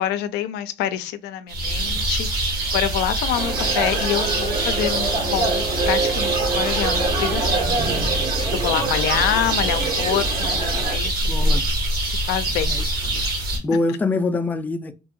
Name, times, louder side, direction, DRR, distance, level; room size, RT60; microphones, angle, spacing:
voice 1, 0.0-11.5 12.1-12.8, left 11 dB, 85° left, 0.4 m, -27 dB
sound 1, 1.5-13.6, right 1 dB, 65° right, 1.2 m, -24 dB
sound 2, 3.3-11.0, right 4 dB, 80° right, 1.8 m, -26 dB
voice 2, 11.3-11.6 12.7-12.9 13.6-14.9, left 3 dB, 10° left, 0.3 m, -24 dB
2.9 x 2.7 x 2.4 m
cardioid pair, 110°, 17 cm